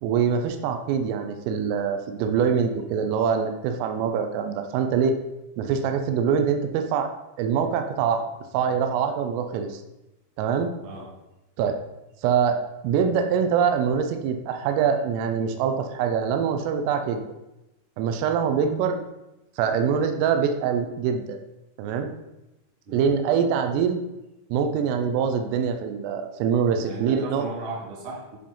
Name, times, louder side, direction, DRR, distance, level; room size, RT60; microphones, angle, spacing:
voice 1, 0.0-5.2 5.6-7.1 7.4-8.3 8.5-9.8 10.4-10.7 11.6-11.8 12.2-12.6 12.8-17.2 18.0-19.0 19.6-21.4 21.8-22.1 22.9-24.0 24.5-27.5, right 7 dB, 85° right, 6 dB, 3.4 m, -24 dB
voice 2, 10.8-11.1 22.9-23.1 26.6-28.4, right 3 dB, 50° right, -3 dB, 2.9 m, -37 dB
10.0 x 4.3 x 5.4 m, 0.96 s
omnidirectional pair, 5.8 m